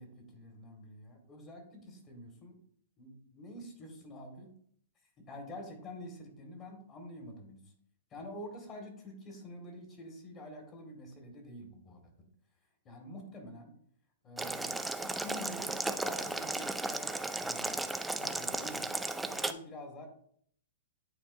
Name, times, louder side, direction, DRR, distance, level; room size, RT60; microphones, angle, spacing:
voice 1, 0.0-2.6 3.0-4.5 5.3-7.6 8.1-12.1 12.8-13.7 14.2-20.1, left 1 dB, 25° left, 3 dB, 1.9 m, -47 dB
Boiling, 14.4-19.5, right 2 dB, 5° right, 0.4 m, -35 dB
10.0 x 4.2 x 2.7 m, 0.63 s
hypercardioid pair, 130°, 0 cm